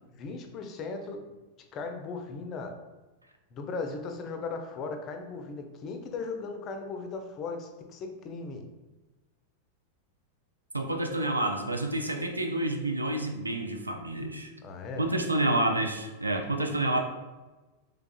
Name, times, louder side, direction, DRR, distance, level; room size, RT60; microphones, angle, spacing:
voice 1, 0.1-1.2 1.7-2.7 3.5-8.6 14.6-15.1, left 4 dB, 35° left, 5 dB, 0.5 m, -37 dB
voice 2, 10.7-14.5 15.0-17.0, right 1 dB, 80° right, 5 dB, 0.4 m, -29 dB
3.6 x 3.4 x 2.3 m, 1.2 s
figure-of-eight pair, 90°, 0 cm